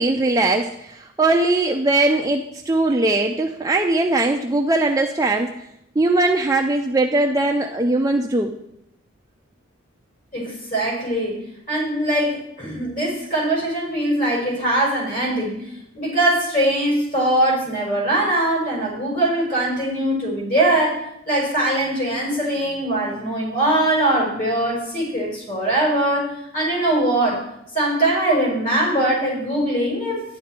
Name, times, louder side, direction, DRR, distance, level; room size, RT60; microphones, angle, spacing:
voice 1, 0.0-5.5 6.0-8.5, right 2 dB, 15° right, 2 dB, 0.5 m, -20 dB
voice 2, 10.3-11.4 11.7-15.6 15.9-27.4 27.7-30.2, right 1 dB, 45° left, -3 dB, 5.3 m, -21 dB
12.0 x 10.5 x 4.4 m, 0.79 s
head